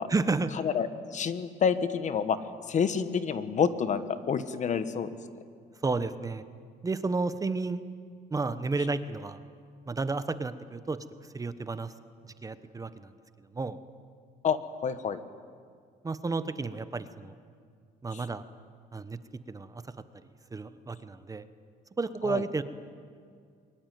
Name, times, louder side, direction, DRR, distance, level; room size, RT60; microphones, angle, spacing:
voice 1, 0.1-0.5 5.8-6.4 6.8-7.8 8.3-9.4 9.9-11.0 11.3-11.9 12.2-13.1 13.5-13.8 16.0-17.3 18.0-18.4 18.9-19.2 19.5-19.8 20.5-21.4 22.0-22.6, right 3 dB, 20° right, 12 dB, 1.1 m, -31 dB
voice 2, 0.6-2.4 2.7-5.2 14.4-15.2 18.1-18.2 22.2-22.4, left 6 dB, 45° left, 12 dB, 1.4 m, -28 dB
22.5 x 21.0 x 9.3 m, 2.1 s
cardioid pair, 110°, 17 cm